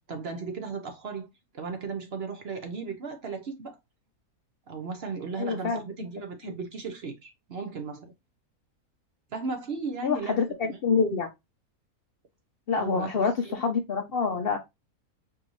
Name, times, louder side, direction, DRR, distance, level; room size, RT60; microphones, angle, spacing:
voice 1, 0.1-1.3 1.5-3.8 4.7-8.1 9.3-10.8 12.8-13.6 14.4-14.5, right 4 dB, 55° right, 0.8 m, -36 dB
voice 2, 5.4-5.8 10.0-11.3 12.7-14.6, left 5 dB, 60° left, 0.6 m, -26 dB
4.7 x 2.6 x 3.0 m
omnidirectional pair, 1.5 m